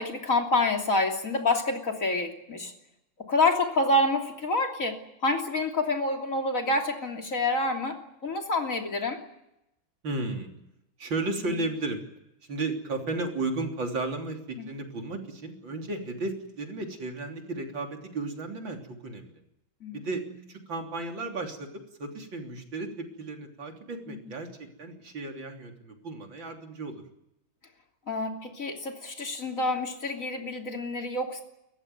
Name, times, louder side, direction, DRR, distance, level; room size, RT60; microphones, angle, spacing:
voice 1, 0.0-2.7 3.3-9.2 11.5-11.6 14.6-14.7 19.8-20.1 24.1-24.2 28.1-31.4, left 2 dB, 40° left, 3 dB, 3.4 m, -27 dB
voice 2, 10.0-10.5 11.0-12.0 12.5-19.4 19.9-20.2 20.5-21.7 22.0-27.0, right 2 dB, 65° right, 3 dB, 4.0 m, -34 dB
29.5 x 14.5 x 9.4 m, 0.85 s
omnidirectional pair, 2.2 m